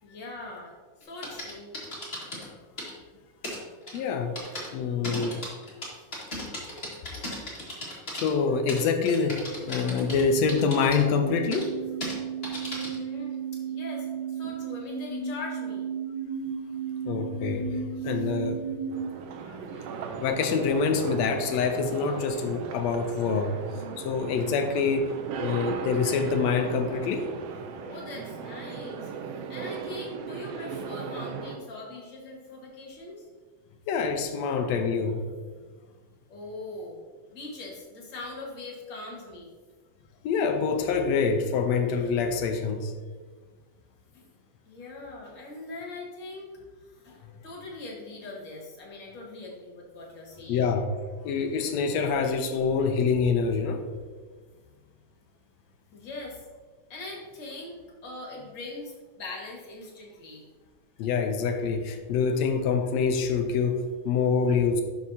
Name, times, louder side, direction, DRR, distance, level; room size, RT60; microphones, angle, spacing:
voice 1, 0.0-0.8 1.0-1.8 12.7-15.9 27.8-29.1 29.5-33.3 36.3-37.0 37.3-39.5 44.1-44.3 44.6-46.5 46.8-50.7 55.9-56.4 56.9-60.4, left 2 dB, 40° left, -2 dB, 2.2 m, -41 dB
sound 1, 1.0-2.4 2.8-2.9 3.4-3.6 3.9-4.0 4.3-4.7 5.0-8.3 8.7-10.2 10.5-11.0 11.5-11.6 12.0-12.1 12.4-13.0, left 1 dB, 25° left, 1.9 m, -36 dB
voice 2, 3.9-4.4 4.7-5.4 8.1-11.7 17.1-17.8 18.0-18.6 19.5-19.6 20.2-23.5 24.0-25.1 25.4-27.3 33.9-35.2 40.2-42.9 50.5-50.9 51.2-53.8 61.0-64.8, left 5 dB, 75° left, 6 dB, 1.8 m, -26 dB
sound 2, 9.5-19.1, right 7 dB, 35° right, 3.0 m, -34 dB
sound 3, 18.9-31.6, right 5 dB, 75° right, 1.5 m, -37 dB
11.5 x 6.0 x 2.8 m, 1.4 s
omnidirectional pair, 3.4 m